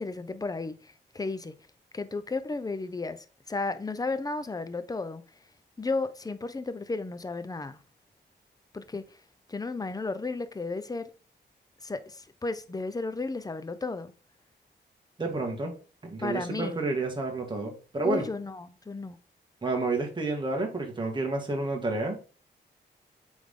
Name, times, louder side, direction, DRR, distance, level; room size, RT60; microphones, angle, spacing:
voice 1, 0.0-1.5 1.9-5.2 5.8-7.8 8.7-9.0 9.5-11.1 11.8-14.1 16.2-16.8 18.0-19.2, left 3 dB, 20° left, 0.6 m, -33 dB
voice 2, 15.2-15.8 16.0-18.3 19.6-22.2, right 2 dB, 25° right, 1.9 m, -30 dB
8.6 x 3.5 x 3.7 m
wide cardioid pair, 100°, 18 cm